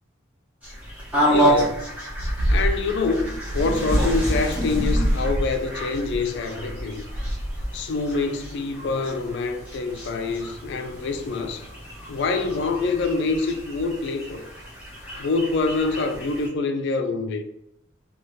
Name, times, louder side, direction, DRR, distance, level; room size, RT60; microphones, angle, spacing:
sound 1, 0.6-16.5, right 1 dB, 5° right, 0.9 m, -29 dB
voice 1, 1.3-1.8 2.5-7.1 7.7-11.7 12.1-14.4 15.2-17.4, left 3 dB, 55° left, 0.4 m, -26 dB
sound 2, 1.5-1.8 2.1-3.0 3.4-4.5 4.8-7.9, equal, 75° right, 0.6 m, -26 dB
2.6 x 2.3 x 3.1 m
head